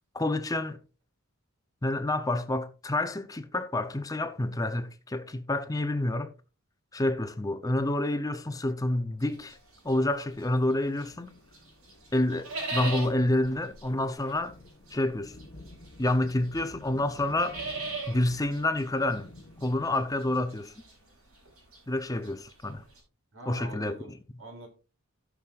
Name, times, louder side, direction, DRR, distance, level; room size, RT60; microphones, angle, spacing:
voice 1, 0.1-0.8 1.8-6.3 6.9-9.6 9.8-11.3 12.1-14.5 14.9-15.4 16.0-17.6 18.1-19.3 19.6-20.7 21.9-22.8 23.5-24.0, left 1 dB, 15° left, 0.6 m, -28 dB
sound 1, 9.2-11.2 11.5-23.0, right 3 dB, 85° right, 5.2 m, -40 dB
sound 2, 11.0-20.4, left 2 dB, 45° left, 1.0 m, -51 dB
voice 2, 23.3-24.7, right 1 dB, 65° right, 2.8 m, -45 dB
17.0 x 6.1 x 2.4 m
head